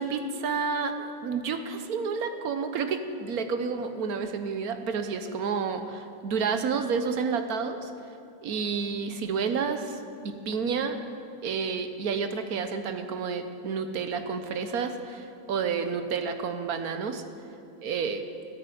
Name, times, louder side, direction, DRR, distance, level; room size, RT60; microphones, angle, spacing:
voice 1, 0.0-7.9 8.4-11.0 11.4-17.2 17.8-18.2, right 5 dB, 60° right, 8 dB, 1.2 m, -30 dB
12.5 x 9.3 x 9.1 m, 2.7 s
omnidirectional pair, 2.0 m